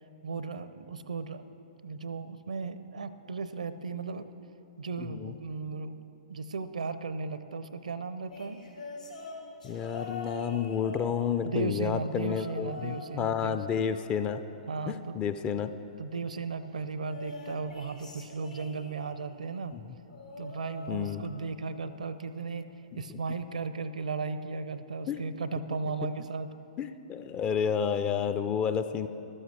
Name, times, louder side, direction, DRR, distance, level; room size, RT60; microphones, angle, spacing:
voice 1, 0.2-1.4 1.8-4.3 4.8-6.0 6.3-8.6 11.4-13.6 14.7-15.3 16.0-19.7 20.4-22.7 23.0-26.5, right 4 dB, 70° right, 12 dB, 0.6 m, -36 dB
voice 2, 5.0-5.3 9.6-14.4 14.9-15.7 20.9-21.2 22.9-23.0 25.1-25.2 26.8-29.1, left 7 dB, 20° left, 10 dB, 0.4 m, -30 dB
sound 1, 8.3-11.6 12.1-13.1 13.4-15.0 17.0-19.2 20.1-21.6 21.9-22.3 23.4-23.5, left 3 dB, 75° left, 2.1 m, -44 dB
14.0 x 12.5 x 3.3 m, 2.8 s
figure-of-eight pair, 115°, 4 cm